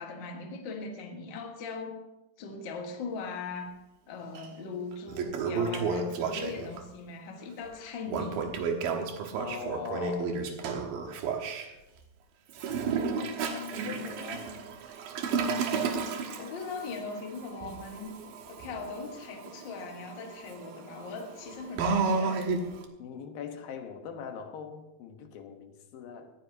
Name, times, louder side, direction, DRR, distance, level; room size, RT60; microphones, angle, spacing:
voice 1, 0.0-2.0 2.4-3.7 4.1-8.5 16.4-22.4, left 4 dB, 45° left, 2 dB, 1.7 m, -40 dB
Toilet flush, 4.4-4.5 4.9-6.8 8.1-11.7 12.5-22.8, right 4 dB, 80° right, 3.1 m, -32 dB
voice 2, 9.4-10.4 13.1-14.5 23.0-26.3, left 6 dB, 85° left, 5 dB, 3.1 m, -41 dB
20.0 x 14.5 x 2.8 m, 0.93 s
omnidirectional pair, 4.0 m